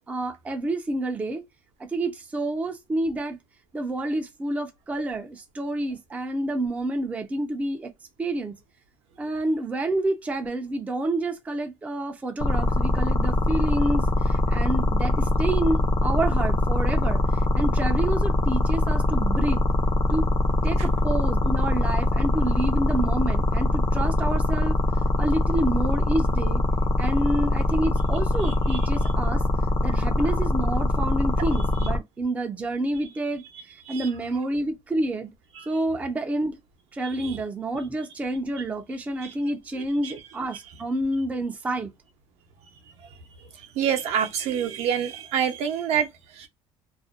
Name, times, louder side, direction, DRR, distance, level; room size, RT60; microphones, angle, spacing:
voice 1, 0.1-1.4 1.9-3.4 3.7-7.9 8.2-8.6 9.2-19.6 20.1-20.3 20.6-24.8 25.2-26.6 27.0-29.4 29.8-35.3 35.7-36.6 36.9-41.9, right 1 dB, 10° right, 0.5 m, -28 dB
sound 1, 12.4-32.0, left 2 dB, 35° left, 0.6 m, -23 dB
voice 2, 28.4-28.8 29.9-30.0 33.9-34.1 35.6-35.7 37.0-37.4 39.2-39.3 40.0-40.2 43.6-46.5, right 8 dB, 65° right, 0.7 m, -28 dB
2.4 x 2.1 x 2.4 m
cardioid pair, 155°, 12 cm